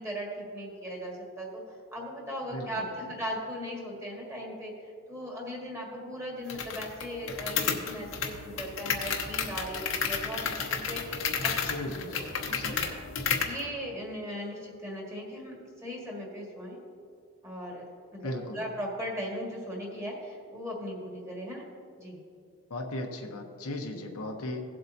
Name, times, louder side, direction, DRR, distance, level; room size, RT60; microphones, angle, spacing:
voice 1, 0.0-1.6 1.9-11.5 12.1-12.2 12.5-12.8 13.4-16.8 17.4-21.6 22.0-22.2, equal, 15° right, -2 dB, 1.9 m, -38 dB
voice 2, 2.5-2.8 11.7-12.9 18.2-18.6 22.7-24.6, left 1 dB, 85° left, 2 dB, 1.1 m, -37 dB
sound 1, 6.5-13.6, left 6 dB, 60° left, 1.0 m, -32 dB
17.0 x 7.7 x 2.8 m, 2.3 s
head